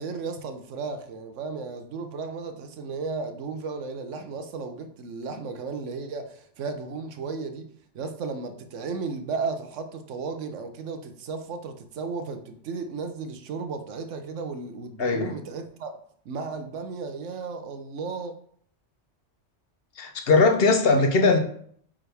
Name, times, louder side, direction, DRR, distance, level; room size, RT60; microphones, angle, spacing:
voice 1, 0.0-7.7 7.9-15.9 16.2-18.3, right 4 dB, 85° right, 1.1 m, -34 dB
voice 2, 15.0-15.3 20.0-21.4, left 3 dB, 55° left, 0.9 m, -20 dB
8.8 x 3.7 x 3.4 m
omnidirectional pair, 1.2 m